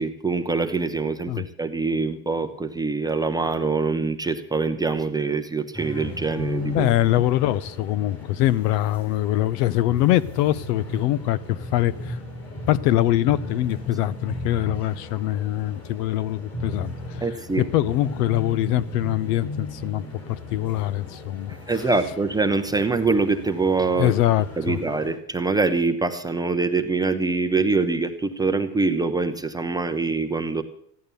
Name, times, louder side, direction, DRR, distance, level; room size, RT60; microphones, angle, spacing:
voice 1, 0.0-6.9 17.2-17.7 21.7-24.2 24.6-30.6, right 3 dB, 10° right, 0.5 m, -24 dB
sound 1, 5.7-25.1, left 2 dB, 30° left, 4.8 m, -36 dB
voice 2, 6.7-12.2 12.7-17.2 17.6-21.6 24.0-24.8, left 14 dB, 70° left, 0.9 m, -23 dB
15.5 x 11.0 x 6.8 m
supercardioid pair, 145°, 49 cm